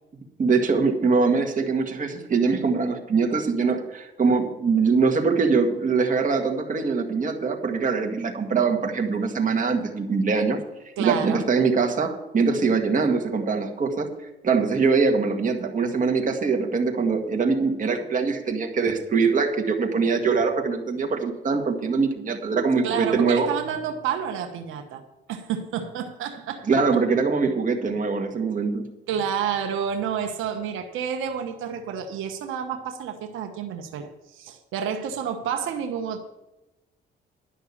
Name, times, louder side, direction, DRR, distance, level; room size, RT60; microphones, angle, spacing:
voice 1, 0.4-10.6 11.0-14.1 14.4-23.5 26.7-28.9, right 4 dB, 40° right, 3 dB, 1.9 m, -23 dB
voice 2, 11.0-11.4 22.8-25.0 25.3-26.7 29.1-36.2, right 7 dB, 85° right, 6 dB, 1.1 m, -29 dB
11.5 x 6.1 x 8.6 m, 0.98 s
cardioid pair, 90°, 20 cm